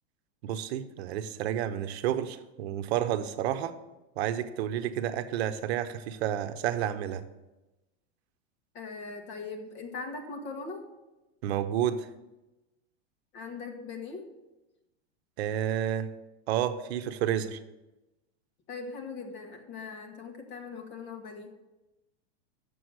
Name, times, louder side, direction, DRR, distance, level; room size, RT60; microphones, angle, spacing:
voice 1, 0.4-3.8 4.2-7.2 11.4-12.1 15.4-16.1 16.5-17.6, right 10 dB, 65° right, 11 dB, 0.9 m, -30 dB
voice 2, 8.7-10.8 13.3-14.3 18.7-21.5, left 4 dB, 35° left, 4 dB, 1.6 m, -40 dB
7.9 x 6.9 x 6.3 m, 1.0 s
supercardioid pair, 145°, 35 cm